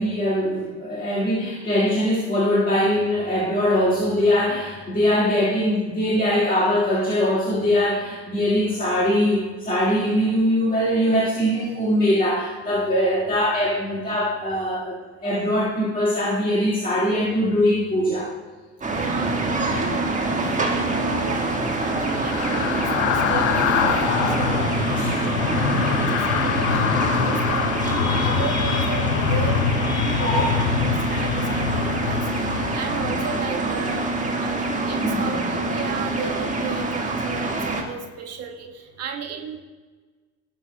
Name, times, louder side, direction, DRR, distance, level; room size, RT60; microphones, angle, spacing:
voice 1, 0.0-18.3 25.0-25.1 30.1-30.6 31.4-31.7 32.4-32.6 35.0-35.4, equal, 20° left, -6 dB, 1.8 m, -22 dB
sound 1, 18.8-37.8, right 2 dB, 20° right, 1.6 m, -25 dB
sound 2, 18.9-28.4, equal, 5° left, 1.6 m, -41 dB
voice 2, 18.9-39.6, right 6 dB, 40° right, 2 dB, 1.4 m, -35 dB
sound 3, 20.6-33.9 34.3-34.5, left 9 dB, 65° left, 0.6 m, -25 dB
17.5 x 6.4 x 2.3 m, 1.4 s
figure-of-eight pair, 60°, 38 cm